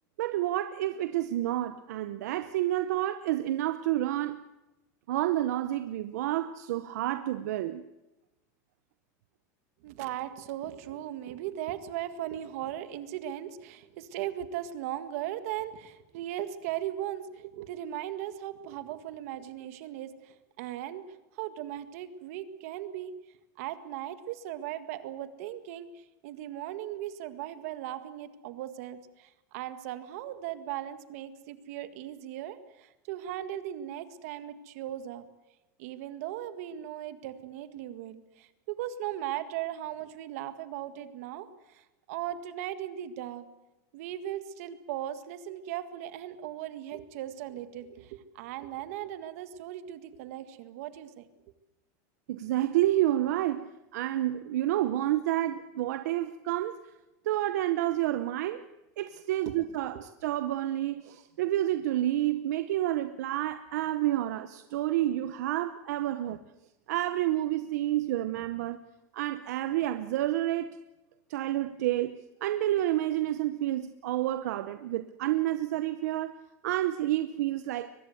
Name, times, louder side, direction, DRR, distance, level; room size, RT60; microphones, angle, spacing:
voice 1, 0.2-4.4 5.1-7.8 52.3-56.8 57.2-58.6 59.0-66.4 66.9-68.8 69.1-70.8 71.3-76.4 76.6-77.9, right 14 dB, 75° right, 0.9 m, -29 dB
voice 2, 9.8-21.0 21.3-23.1 23.6-35.2 35.8-43.5 43.9-51.2 59.4-59.5 59.9-60.0, right 12 dB, 60° right, 1.9 m, -38 dB
23.0 x 20.5 x 8.0 m
supercardioid pair, 170°, 9 cm